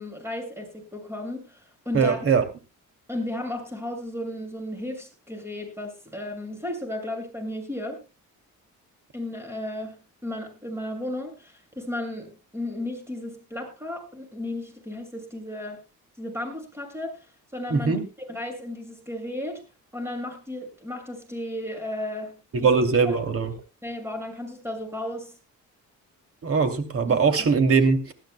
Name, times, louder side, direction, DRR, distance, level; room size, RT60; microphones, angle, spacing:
voice 1, 0.0-2.2 3.1-8.0 9.1-15.8 16.2-17.2 17.5-19.6 19.9-22.8 23.0-23.2 23.8-25.4 27.1-27.2, left 1 dB, 10° right, 4 dB, 6.7 m, -34 dB
voice 2, 1.9-2.4 17.7-18.0 22.5-23.5 26.4-28.1, right 5 dB, 45° right, 7 dB, 2.7 m, -21 dB
20.0 x 14.0 x 2.2 m, 0.30 s
cardioid pair, 105°, 31 cm